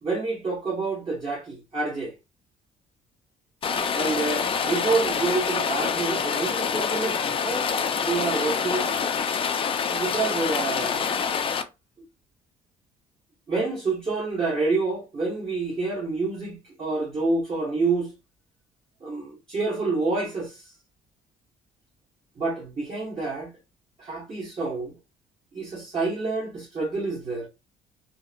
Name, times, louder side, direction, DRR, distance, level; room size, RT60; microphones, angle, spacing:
voice 1, 0.0-2.1 3.9-7.8 8.0-8.9 9.9-11.1 13.5-18.1 19.0-20.7 22.4-23.5 24.0-24.9 25.5-27.5, right 3 dB, 30° right, 1.0 m, -28 dB
Rain, 3.6-11.6, left 6 dB, 35° left, 0.4 m, -26 dB
2.8 x 2.0 x 2.4 m
cardioid pair, 110°, 17 cm